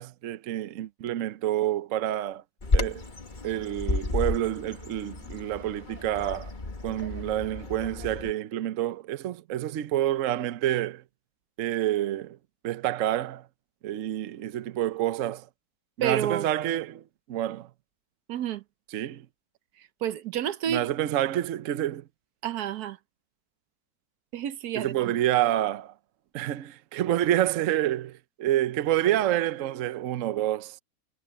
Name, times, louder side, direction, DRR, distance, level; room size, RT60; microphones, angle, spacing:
voice 1, 0.0-2.4 2.7-3.0 3.4-6.5 6.8-11.0 11.6-12.4 12.6-13.4 13.8-15.5 16.0-17.0 17.3-17.7 18.9-19.3 20.7-22.0 24.8-25.9 26.3-30.8, right 12 dB, 60° right, 1.0 m, -28 dB
Bird vocalization bird call bird song, 2.6-8.3, left 2 dB, 30° left, 1.7 m, -32 dB
voice 2, 16.0-16.5 18.3-18.6 19.8-20.9 22.4-23.0 24.3-25.2, right 10 dB, 75° right, 1.3 m, -30 dB
omnidirectional pair, 1.6 m